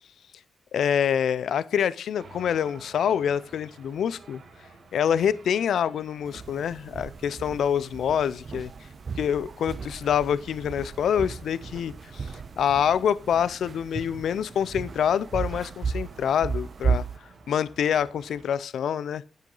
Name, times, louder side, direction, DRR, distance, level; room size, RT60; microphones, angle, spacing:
voice 1, 0.7-4.4 4.9-8.7 9.2-12.3 12.6-17.1 17.5-19.2, left 8 dB, 85° left, 0.4 m, -26 dB
sound 1, 2.2-18.5, right 4 dB, 70° right, 2.6 m, -52 dB
sound 2, 6.2-17.2, right 5 dB, 55° right, 0.5 m, -34 dB
10.5 x 8.2 x 3.8 m
cardioid pair, 60°, 0 cm